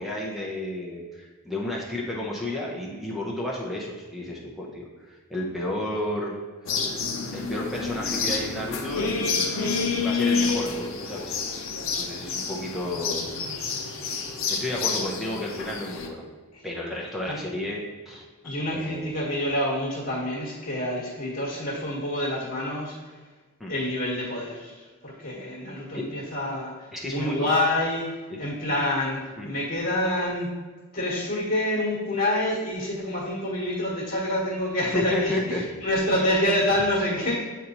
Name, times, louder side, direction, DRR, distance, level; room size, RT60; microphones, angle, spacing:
voice 1, 0.0-6.3 6.6-6.7 7.3-11.3 12.0-13.3 13.6-14.0 14.5-16.2 16.6-19.1 23.6-23.7 25.9-26.0 26.9-27.5 28.3-28.4 29.4-29.5 34.9-35.6 36.2-36.3, left 1 dB, ahead, -3 dB, 0.8 m, -32 dB
sound 1, 6.7-16.1, left 4 dB, 70° left, 0.7 m, -28 dB
voice 2, 18.4-23.1 23.7-30.5 30.9-37.4, left 1 dB, 50° left, -8 dB, 1.4 m, -27 dB
8.1 x 4.1 x 2.9 m, 1.3 s
head